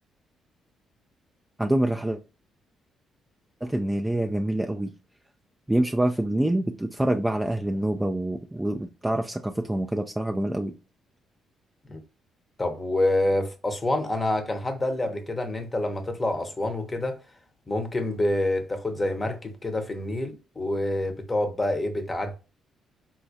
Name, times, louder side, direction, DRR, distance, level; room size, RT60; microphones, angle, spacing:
voice 1, 1.6-2.2 3.6-4.9 5.7-10.7, right 1 dB, 10° right, 0.3 m, -26 dB
voice 2, 12.6-17.2 17.7-22.4, left 1 dB, 20° left, 0.8 m, -27 dB
3.9 x 2.3 x 2.6 m
cardioid pair, 90°, 0 cm